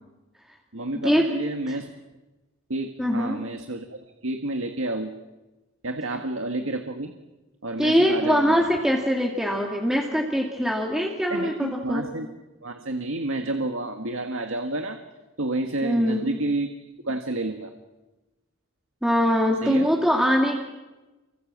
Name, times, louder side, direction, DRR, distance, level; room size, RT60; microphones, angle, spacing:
voice 1, 0.7-1.9 2.7-5.1 5.8-7.1 7.6-8.6 11.3-12.3 12.6-15.0 15.4-16.7 17.0-17.7 19.6-19.9, right 2 dB, 80° right, 5 dB, 1.8 m, -29 dB
voice 2, 3.0-3.4 7.8-12.1 15.8-16.3 19.0-20.6, equal, 5° right, -1 dB, 2.5 m, -22 dB
29.5 x 24.5 x 7.5 m, 1.1 s
head